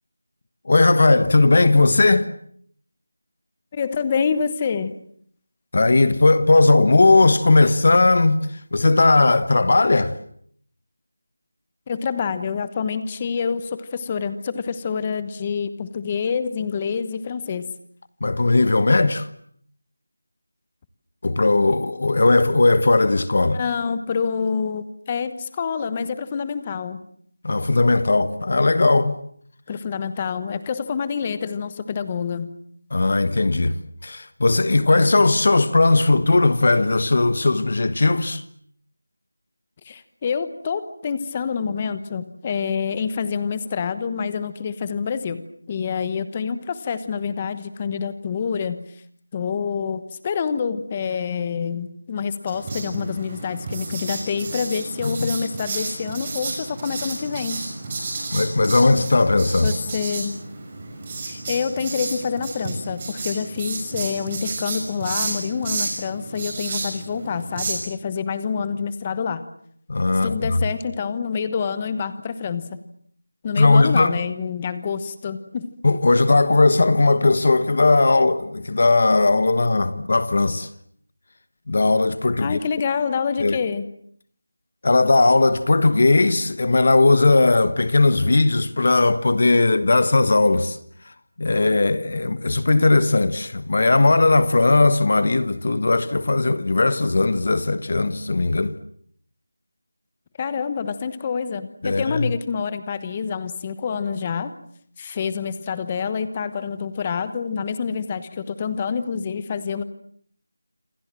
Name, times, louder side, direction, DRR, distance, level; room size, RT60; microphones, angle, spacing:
voice 1, 0.6-2.3 5.7-8.4 8.7-10.1 18.2-19.3 21.2-23.6 27.4-29.2 32.9-33.7 34.0-38.4 55.0-55.3 58.3-59.7 69.9-70.6 73.6-74.2 75.8-80.7 81.7-82.6 83.4-83.6 84.8-90.8 91.4-98.7 101.8-102.3, left 2 dB, 35° left, 1.3 m, -18 dB
voice 2, 3.7-4.9 11.9-17.6 23.5-27.0 29.7-32.5 39.8-45.4 45.7-48.8 49.3-57.6 59.6-60.3 61.2-69.4 70.2-72.8 73.4-75.7 82.4-83.8 100.4-104.5 105.0-109.8, left 6 dB, 15° left, 1.2 m, -27 dB
Writing, 52.5-67.7, right 3 dB, 15° right, 5.9 m, -31 dB
28.0 x 25.0 x 7.6 m
figure-of-eight pair, 180°, 0 cm